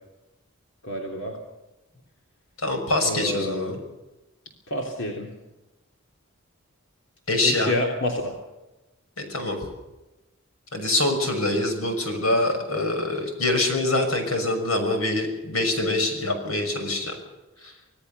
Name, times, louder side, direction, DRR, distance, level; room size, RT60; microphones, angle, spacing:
voice 1, 0.8-1.3 3.0-3.7 4.7-5.3 7.4-8.3, left 1 dB, 60° left, 0 dB, 3.4 m, -28 dB
voice 2, 2.6-3.8 7.3-7.7 9.3-9.6 10.7-17.1, left 2 dB, 85° left, 5 dB, 6.2 m, -24 dB
26.5 x 17.5 x 6.9 m, 1.0 s
head